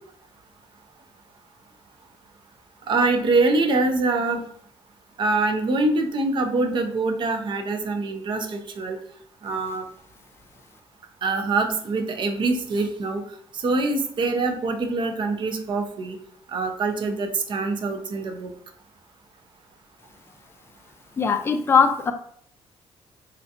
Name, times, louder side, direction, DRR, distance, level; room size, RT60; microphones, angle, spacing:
voice 1, 2.9-4.4 5.2-9.0 9.4-9.9 11.2-13.2 13.5-16.2 16.5-18.5, right 3 dB, 50° right, 5 dB, 0.5 m, -24 dB
voice 2, 21.2-22.1, left 6 dB, 25° left, 7 dB, 0.3 m, -20 dB
3.6 x 2.2 x 2.7 m, 0.63 s
cardioid pair, 110°, 11 cm